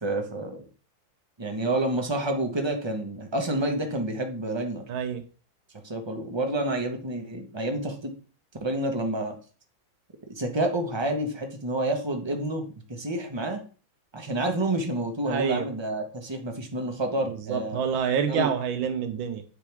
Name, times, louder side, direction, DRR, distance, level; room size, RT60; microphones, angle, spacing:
voice 1, 0.0-0.6 1.4-4.8 5.8-8.1 8.6-9.4 10.3-13.6 14.1-17.8 18.3-18.5, right 1 dB, 20° right, 4 dB, 0.8 m, -29 dB
voice 2, 4.9-5.2 15.3-15.7 17.3-19.4, right 7 dB, 85° right, 7 dB, 1.6 m, -27 dB
9.9 x 4.6 x 3.5 m, 0.38 s
omnidirectional pair, 2.1 m